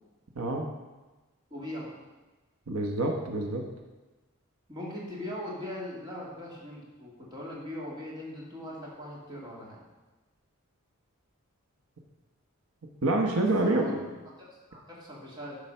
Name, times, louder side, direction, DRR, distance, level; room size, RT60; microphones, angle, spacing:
voice 1, 0.4-0.7 2.7-3.6 13.0-14.0, right 2 dB, 90° right, 2 dB, 1.1 m, -27 dB
voice 2, 1.5-1.9 4.7-9.8 13.6-14.1 14.4-15.6, left 1 dB, 20° right, -5 dB, 2.5 m, -40 dB
12.0 x 4.8 x 5.6 m, 1.2 s
head